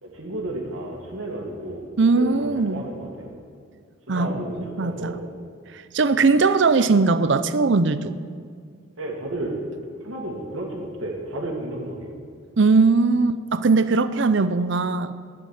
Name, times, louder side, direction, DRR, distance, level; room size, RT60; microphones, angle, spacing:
voice 1, 0.0-1.9 2.2-3.3 4.1-5.3 9.0-9.6 10.0-12.2, right 1 dB, 75° right, -1 dB, 2.1 m, -32 dB
voice 2, 2.0-2.9 4.1-4.4 4.8-5.2 5.9-8.2 12.6-15.1, right 4 dB, 60° right, 13 dB, 0.6 m, -19 dB
12.0 x 10.0 x 7.3 m, 2.1 s
head